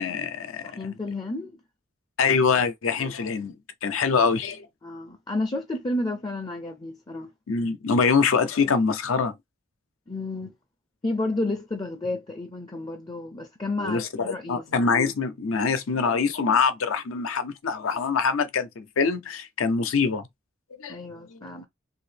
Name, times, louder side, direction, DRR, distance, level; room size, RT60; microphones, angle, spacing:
voice 1, 0.0-0.6 2.2-3.5 3.8-4.7 7.5-9.3 13.8-20.3 20.8-21.0 21.3-21.4, left 5 dB, 80° left, 0.6 m, -24 dB
voice 2, 0.6-1.6 4.8-7.3 10.1-10.5 11.0-14.6 20.9-21.7, left 2 dB, 20° left, 0.4 m, -31 dB
2.8 x 2.6 x 3.2 m
head